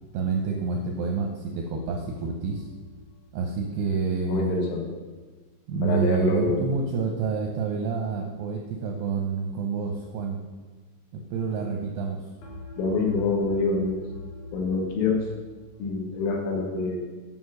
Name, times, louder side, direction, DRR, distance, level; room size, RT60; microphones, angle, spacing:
voice 1, 0.1-2.7 3.3-4.6 5.7-10.4 11.1-12.3, right 5 dB, 80° right, 2 dB, 2.3 m, -28 dB
sound 1, 1.7-4.8 12.4-16.4, left 1 dB, 55° left, 2.2 m, -45 dB
voice 2, 4.3-5.0 5.8-6.7 12.8-14.0 14.5-15.2 15.8-17.1, left 3 dB, 80° left, 0 dB, 4.0 m, -26 dB
9.3 x 5.9 x 6.5 m, 1.3 s
omnidirectional pair, 5.7 m